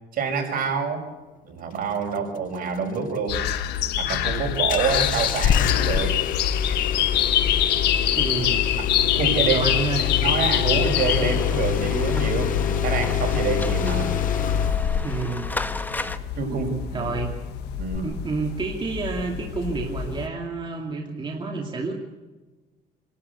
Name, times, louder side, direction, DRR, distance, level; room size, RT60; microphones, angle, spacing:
voice 1, 0.1-1.1 1.4-3.4 4.0-6.2 8.8-9.7 10.0-14.2 16.4-17.1 17.8-18.1, right 5 dB, 60° right, 4 dB, 5.4 m, -27 dB
sound 1, 3.3-20.3, left 10 dB, 80° left, 1.4 m, -26 dB
Engine starting, 4.7-15.3 17.9-18.0, left 9 dB, 55° left, 0.6 m, -25 dB
voice 2, 8.1-8.6 9.5-10.0 15.0-15.5 16.9-17.3 18.0-21.9, right 4 dB, 30° right, 0 dB, 2.6 m, -29 dB
sound 2, 10.8-16.2, left 2 dB, 10° left, 1.1 m, -34 dB
27.0 x 12.5 x 8.3 m, 1.2 s
cardioid pair, 110°, 17 cm